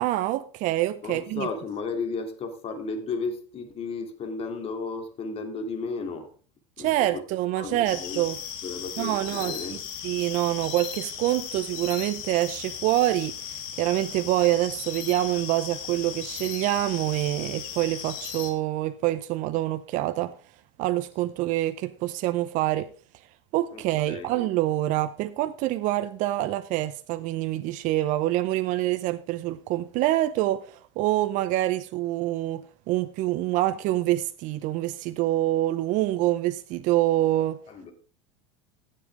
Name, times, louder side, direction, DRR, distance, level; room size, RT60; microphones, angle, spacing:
voice 1, 0.0-1.5 6.8-8.3 9.0-9.5 10.0-20.3 20.8-22.9 23.5-37.6, right 15 dB, 50° right, 0.7 m, -26 dB
voice 2, 1.0-6.3 6.8-7.3 7.5-8.2 8.6-9.8 23.7-24.4 37.7-37.9, left 4 dB, 35° left, 3.1 m, -34 dB
sound 1, 7.9-18.5, left 8 dB, 60° left, 3.0 m, -37 dB
15.5 x 7.6 x 3.6 m
supercardioid pair, 105°, 16 cm